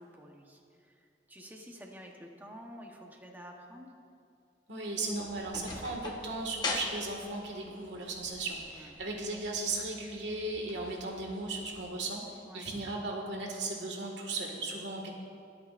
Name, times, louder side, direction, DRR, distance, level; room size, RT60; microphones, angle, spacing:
voice 1, 0.0-3.9 8.7-8.9 12.4-12.7, equal, 10° right, 1 dB, 1.0 m, -50 dB
voice 2, 4.7-15.1, right 2 dB, 70° right, 0 dB, 1.8 m, -36 dB
sound 1, 5.0-11.9, left 2 dB, 25° left, 1.1 m, -43 dB
24.5 x 8.6 x 2.5 m, 2.5 s
head